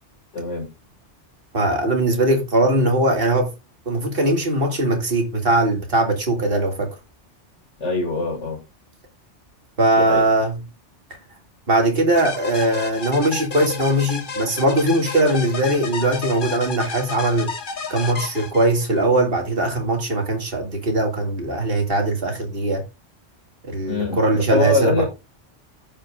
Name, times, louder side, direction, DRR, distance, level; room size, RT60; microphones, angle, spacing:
voice 1, 0.3-0.7 7.8-8.6 10.0-10.3 23.9-25.0, left 2 dB, 80° left, 2.3 m, -23 dB
voice 2, 1.5-3.5 3.9-6.9 9.8-10.5 11.7-17.5 17.9-22.8 23.7-25.0, right 1 dB, 50° right, 2.3 m, -20 dB
sound 1, 12.1-19.0, left 4 dB, 45° left, 1.2 m, -31 dB
15.0 x 5.4 x 2.4 m
omnidirectional pair, 1.2 m